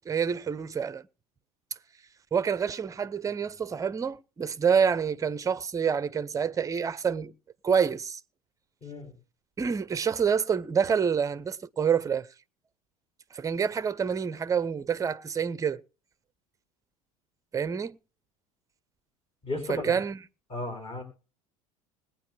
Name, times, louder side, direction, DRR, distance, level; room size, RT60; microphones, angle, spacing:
voice 1, 0.1-1.0 2.3-7.3 7.6-8.2 9.6-12.3 13.3-15.8 17.5-18.0 19.7-20.2, right 7 dB, 15° right, 0.6 m, -27 dB
voice 2, 8.8-9.1 19.4-19.9 20.5-21.0, left 2 dB, 30° left, 4.8 m, -34 dB
21.0 x 9.2 x 3.1 m
figure-of-eight pair, 70°, 19 cm